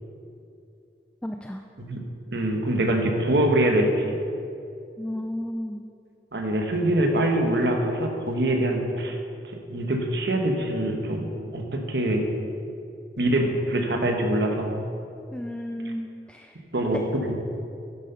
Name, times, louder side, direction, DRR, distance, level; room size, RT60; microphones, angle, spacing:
voice 1, 1.2-1.6 5.0-5.8 15.3-16.6, left 1 dB, 5° left, 4 dB, 0.3 m, -33 dB
voice 2, 2.3-4.1 6.3-9.2 9.7-12.2 13.2-14.7 16.7-17.3, right 1 dB, 65° right, 3 dB, 1.2 m, -24 dB
10.0 x 7.7 x 5.5 m, 2.6 s
head